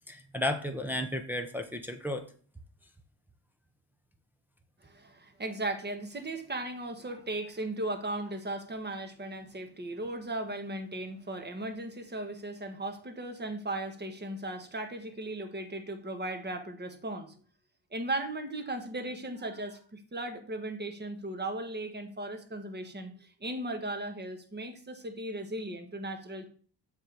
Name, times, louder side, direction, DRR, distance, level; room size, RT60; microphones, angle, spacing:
voice 1, 0.1-2.3, left 1 dB, 5° right, 4 dB, 0.8 m, -33 dB
voice 2, 4.8-17.3 17.9-26.5, right 1 dB, 20° right, 6 dB, 1.4 m, -37 dB
7.3 x 3.5 x 5.9 m, 0.43 s
cardioid pair, 80°, 48 cm